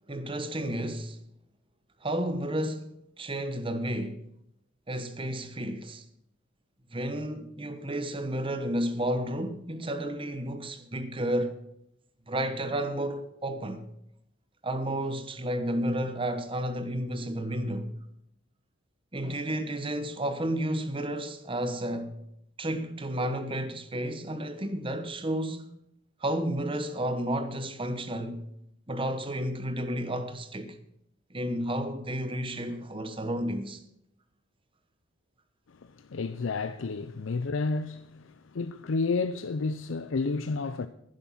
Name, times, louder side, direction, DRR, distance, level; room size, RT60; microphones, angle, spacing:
voice 1, 0.1-1.2 2.0-4.2 4.9-6.0 6.9-11.6 12.3-13.8 14.6-17.9 19.1-22.2 22.6-25.7 26.2-28.5 28.9-30.8 31.3-33.8, right 1 dB, 25° right, 1.0 m, -32 dB
voice 2, 35.7-40.9, left 4 dB, 70° left, 0.5 m, -31 dB
11.5 x 10.5 x 5.7 m
head